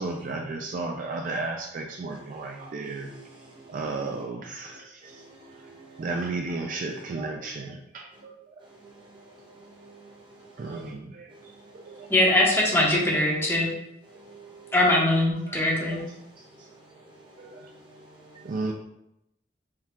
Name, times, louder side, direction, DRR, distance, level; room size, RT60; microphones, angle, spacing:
voice 1, 0.0-3.1 3.7-5.2 6.0-8.4 10.6-11.3 11.8-12.1 15.5-15.6 15.9-16.0 17.4-17.7 18.4-18.7, right 3 dB, 45° right, 2 dB, 0.3 m, -33 dB
voice 2, 2.9-4.1 5.0-6.1 9.8-10.0 11.8-12.1 14.2-14.7 18.3-18.4, right 3 dB, 30° right, -4 dB, 1.1 m, -49 dB
voice 3, 12.1-13.7 14.7-16.0, left 1 dB, 15° left, -4 dB, 0.9 m, -22 dB
4.5 x 2.3 x 3.6 m, 0.83 s
head